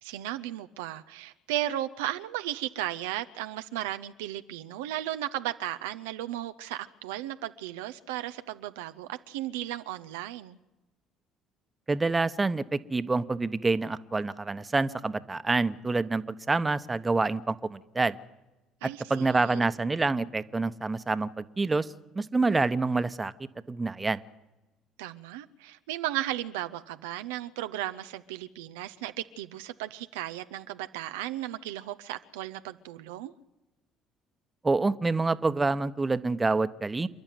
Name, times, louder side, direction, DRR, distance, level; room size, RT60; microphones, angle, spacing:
voice 1, 0.0-10.6 18.8-19.7 25.0-33.3, right 13 dB, 85° right, 0.7 m, -35 dB
voice 2, 11.9-18.1 18.8-21.9 22.1-23.3 23.7-24.2 34.6-37.1, right 3 dB, 20° right, 1.1 m, -27 dB
28.5 x 11.0 x 9.3 m
hypercardioid pair, 60°, 0 cm